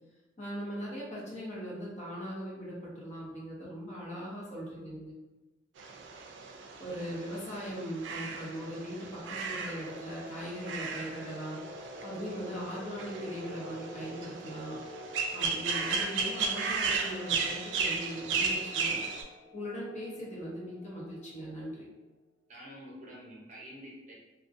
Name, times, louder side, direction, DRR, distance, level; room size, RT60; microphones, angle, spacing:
voice 1, 0.4-5.1 6.8-14.8 15.3-19.0 19.5-21.8, equal, 40° left, -5 dB, 0.8 m, -40 dB
sound 1, 5.8-19.2, right 5 dB, 85° right, 0.3 m, -35 dB
sound 2, 7.4-21.8, left 1 dB, 10° left, 0.7 m, -49 dB
voice 2, 22.5-24.1, equal, 45° right, -5 dB, 0.7 m, -48 dB
2.5 x 2.1 x 2.5 m, 1.1 s
head